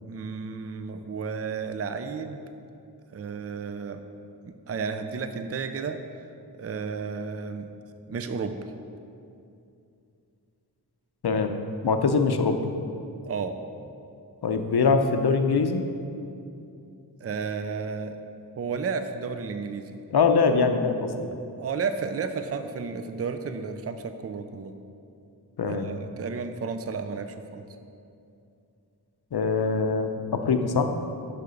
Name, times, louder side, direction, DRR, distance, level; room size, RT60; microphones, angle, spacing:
voice 1, 0.0-2.4 3.1-4.0 4.4-6.0 6.6-7.7 8.1-8.6 13.3-13.6 17.2-18.2 18.6-20.0 21.5-24.7 25.6-27.6, right 5 dB, 40° right, 8 dB, 0.4 m, -32 dB
voice 2, 11.2-11.6 11.8-12.6 14.4-15.9 20.1-21.2 25.6-25.9 29.3-30.9, left 4 dB, 70° left, 6 dB, 0.6 m, -23 dB
6.7 x 5.8 x 5.0 m, 2.6 s
wide cardioid pair, 70°, 40 cm